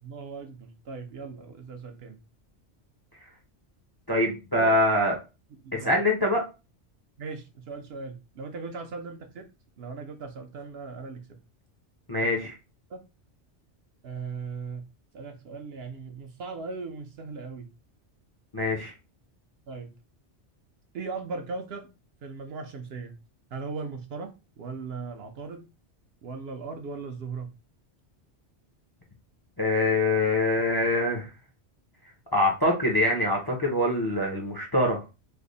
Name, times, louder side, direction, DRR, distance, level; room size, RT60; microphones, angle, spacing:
voice 1, 0.0-2.2 4.5-4.8 5.6-5.9 7.2-9.5 9.8-11.4 12.2-12.3 12.9-13.0 14.0-14.8 15.1-17.7 19.7-19.9 20.9-21.9 22.2-23.1 23.5-25.6 26.2-27.5, right 4 dB, 65° right, 0.8 m, -38 dB
voice 2, 4.1-5.1 5.7-6.4 12.1-12.5 18.5-18.9 29.6-31.3 32.3-35.0, left 1 dB, 30° left, 0.5 m, -24 dB
3.3 x 2.0 x 3.8 m
omnidirectional pair, 1.2 m